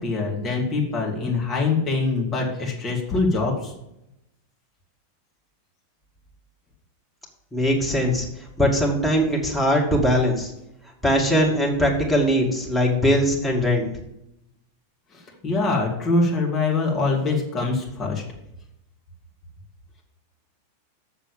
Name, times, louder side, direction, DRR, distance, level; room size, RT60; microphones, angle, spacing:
voice 1, 0.0-3.7 15.4-18.2, left 3 dB, 25° left, -2 dB, 2.8 m, -23 dB
voice 2, 7.5-8.3 8.6-10.5 11.0-13.9, equal, ahead, -3 dB, 2.4 m, -20 dB
7.2 x 7.1 x 7.4 m, 0.85 s
figure-of-eight pair, 90°, 0 cm